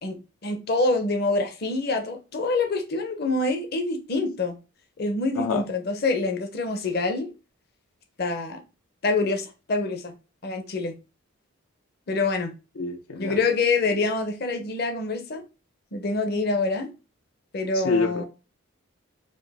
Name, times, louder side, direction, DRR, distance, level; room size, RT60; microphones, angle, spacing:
voice 1, 0.0-4.6 5.0-7.3 8.2-8.6 9.0-10.1 10.4-10.9 12.1-12.5 13.1-15.4 15.9-16.9 17.5-18.2, left 3 dB, 45° left, 0.7 m, -26 dB
voice 2, 12.8-13.4 17.8-18.2, left 4 dB, 85° left, 0.6 m, -26 dB
4.4 x 2.6 x 3.4 m
head